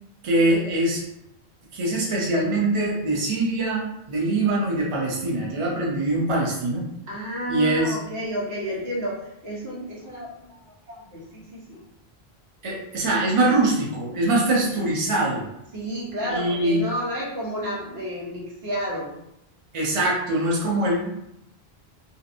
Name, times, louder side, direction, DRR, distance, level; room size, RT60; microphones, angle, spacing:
voice 1, 0.2-1.0 1.7-6.8 7.5-8.0 12.6-15.4 16.3-16.8 19.7-21.1, right 2 dB, 40° right, -3 dB, 0.6 m, -23 dB
voice 2, 7.1-10.6 10.9-11.8 15.7-19.1, equal, 90° right, -5 dB, 1.1 m, -31 dB
2.7 x 2.2 x 2.5 m, 0.83 s
omnidirectional pair, 1.0 m